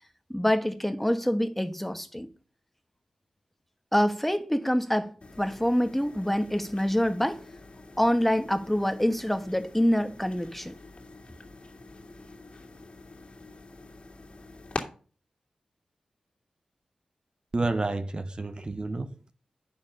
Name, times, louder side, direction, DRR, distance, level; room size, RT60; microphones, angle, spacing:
voice 1, 0.3-2.3 3.9-5.1 5.4-7.4 8.0-10.8, equal, 5° left, 1.3 m, -26 dB
sound 1, 5.2-14.8, left 3 dB, 50° left, 2.4 m, -44 dB
voice 2, 17.5-19.3, right 2 dB, 40° right, 0.9 m, -30 dB
9.4 x 6.9 x 5.3 m
cardioid pair, 55°, 2 cm